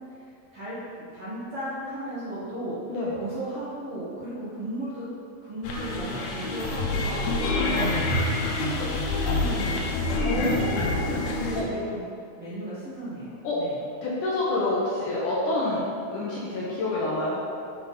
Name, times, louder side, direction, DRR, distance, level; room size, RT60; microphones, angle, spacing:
voice 1, 0.5-2.8 3.1-5.1 5.4-12.0 12.4-13.8, right 1 dB, 50° right, -10 dB, 1.9 m, -35 dB
sound 1, 5.6-11.6, left 2 dB, 90° left, 3.0 m, -27 dB
voice 2, 7.0-7.4 10.2-11.3 11.5-11.6 13.4-13.6 14.0-17.4, left 2 dB, 70° left, -6 dB, 2.1 m, -28 dB
7.9 x 4.8 x 5.4 m, 2.5 s
omnidirectional pair, 4.4 m